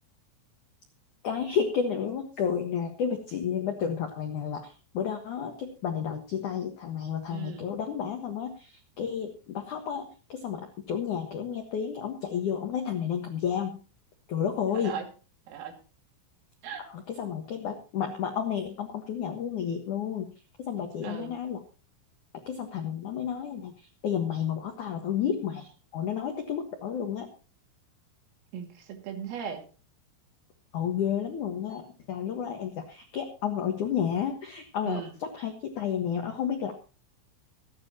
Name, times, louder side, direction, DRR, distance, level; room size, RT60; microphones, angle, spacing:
voice 1, 1.2-13.8 14.3-15.0 16.9-20.3 20.6-21.6 22.5-27.3 30.7-36.7, left 8 dB, 75° left, 4 dB, 1.8 m, -31 dB
voice 2, 7.3-7.7 14.7-15.1 15.5-15.8 16.6-16.9 21.0-21.3 28.5-29.6 34.8-35.1, right 7 dB, 80° right, 4 dB, 5.0 m, -37 dB
25.5 x 9.5 x 2.9 m, 0.34 s
omnidirectional pair, 5.9 m